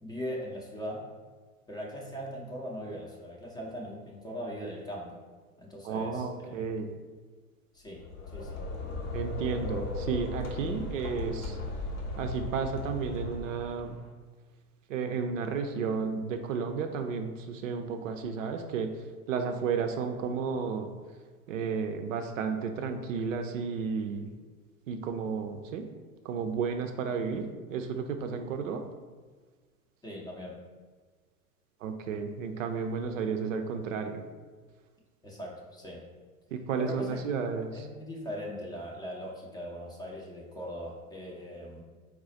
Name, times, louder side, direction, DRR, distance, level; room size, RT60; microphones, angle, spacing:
voice 1, 0.0-1.0 1.7-5.2 5.6-6.7 7.7-8.0 8.3-8.6 30.0-30.6 35.2-36.0 36.8-37.2 37.7-41.8, equal, 10° left, -3 dB, 0.5 m, -40 dB
voice 2, 5.8-6.9 9.1-11.6 12.2-14.0 14.9-18.9 19.3-20.9 21.5-24.3 24.9-25.9 26.2-28.8 31.8-34.2 36.5-37.9, right 5 dB, 60° right, 6 dB, 0.5 m, -32 dB
sound 1, 7.9-13.9, left 2 dB, 65° left, 0.9 m, -36 dB
4.2 x 2.3 x 3.9 m, 1.5 s
figure-of-eight pair, 90°, 44 cm